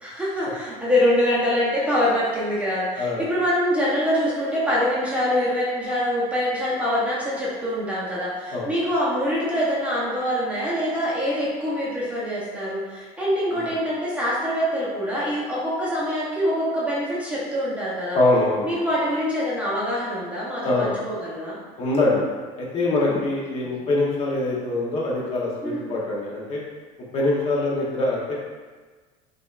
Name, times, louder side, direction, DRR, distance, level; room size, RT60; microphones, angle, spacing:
voice 1, 0.0-18.2 18.6-21.6 23.0-23.2 23.6-23.8 25.6-25.9, equal, 10° right, -7 dB, 0.6 m, -24 dB
voice 2, 18.1-18.7 20.6-21.0 21.8-22.2 22.6-26.6 27.1-28.4, left 2 dB, 40° left, -4 dB, 0.8 m, -23 dB
4.9 x 2.3 x 2.4 m, 1.4 s
cardioid pair, 145°, 16 cm